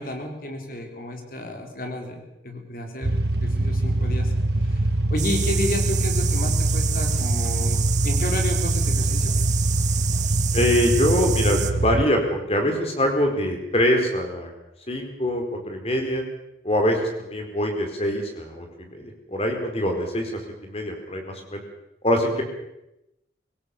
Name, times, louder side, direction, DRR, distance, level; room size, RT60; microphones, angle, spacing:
voice 1, 0.0-4.3 4.6-7.8 8.0-9.3, left 1 dB, 50° left, 3 dB, 3.9 m, -32 dB
sound 1, 3.0-12.1, right 1 dB, 70° right, 1.1 m, -23 dB
sound 2, 5.2-11.7, right 11 dB, 40° right, 1.4 m, -30 dB
voice 2, 10.5-14.5 14.9-16.2 16.6-20.3 20.6-21.6 22.0-22.4, left 1 dB, 35° left, 3 dB, 4.3 m, -24 dB
24.5 x 17.5 x 7.1 m, 0.89 s
head